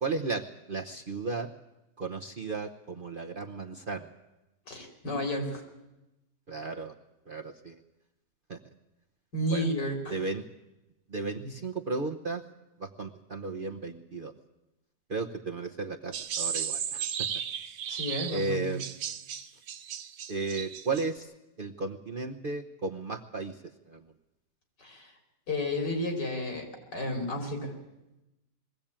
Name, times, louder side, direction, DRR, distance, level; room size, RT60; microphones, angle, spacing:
voice 1, 0.0-1.5 2.0-4.1 6.5-6.9 7.3-7.8 8.5-8.6 9.5-9.7 10.1-10.4 11.1-12.4 12.8-14.3 15.1-17.3 18.3-18.8 20.3-21.3 21.6-23.6 23.9-24.0, right 3 dB, 40° right, 2 dB, 0.8 m, -34 dB
voice 2, 4.7-5.6 9.3-10.2 11.4-11.5 17.9-18.8 24.8-25.1 25.5-27.7, left 1 dB, 80° left, 3 dB, 4.3 m, -32 dB
sound 1, 16.1-21.1, right 8 dB, 85° right, 1.6 m, -35 dB
21.5 x 16.0 x 8.8 m, 0.97 s
omnidirectional pair, 1.8 m